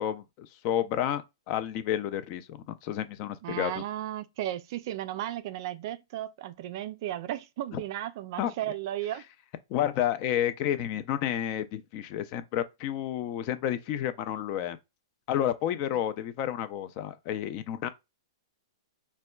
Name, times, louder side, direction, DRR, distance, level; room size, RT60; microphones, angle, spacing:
voice 1, 0.0-3.7 7.7-7.8 8.4-8.5 9.7-14.8 15.3-17.9, left 11 dB, 40° left, 0.4 m, -30 dB
voice 2, 3.4-9.2, right 13 dB, 50° right, 0.3 m, -35 dB
4.2 x 2.1 x 2.3 m
hypercardioid pair, 140°, 3 cm